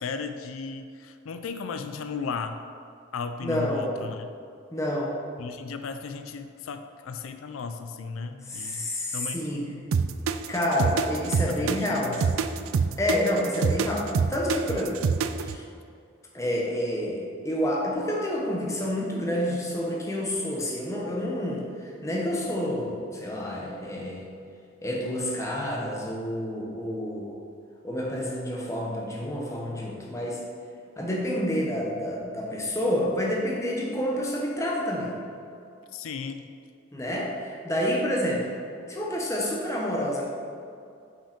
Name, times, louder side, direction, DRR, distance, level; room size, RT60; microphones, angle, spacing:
voice 1, 0.0-2.6 3.1-4.3 5.4-8.9 9.1-9.9 11.5-12.2 35.9-36.5, left 5 dB, 90° left, 8 dB, 0.4 m, -35 dB
voice 2, 3.4-3.9 4.7-5.1 8.5-9.7 10.5-12.4 13.0-15.0 15.4-15.6 16.3-21.6 22.0-24.2 24.8-27.3 27.8-30.4 31.0-35.1 36.9-38.5 38.9-40.3, left 1 dB, 15° left, -3 dB, 1.0 m, -28 dB
sound 1, 9.9-15.6, right 5 dB, 85° right, 0.4 m, -25 dB
5.9 x 5.6 x 5.0 m, 2.4 s
head